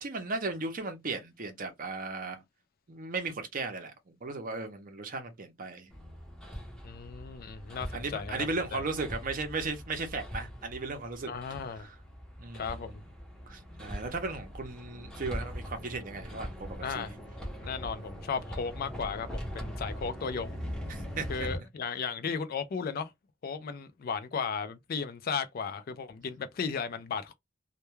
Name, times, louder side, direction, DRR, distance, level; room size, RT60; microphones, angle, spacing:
voice 1, 0.0-2.4 2.9-5.9 7.9-11.3 11.8-11.9 12.4-12.9 13.5-17.2 20.9-21.5, right 3 dB, 40° right, 0.6 m, -36 dB
Hammer, 5.9-21.6, equal, 5° left, 0.6 m, -41 dB
voice 2, 6.8-8.8 11.3-11.9 12.5-12.9 16.8-17.1 17.6-20.6 21.3-23.1 23.4-27.3, left 5 dB, 45° left, 0.3 m, -35 dB
2.2 x 2.2 x 3.0 m
head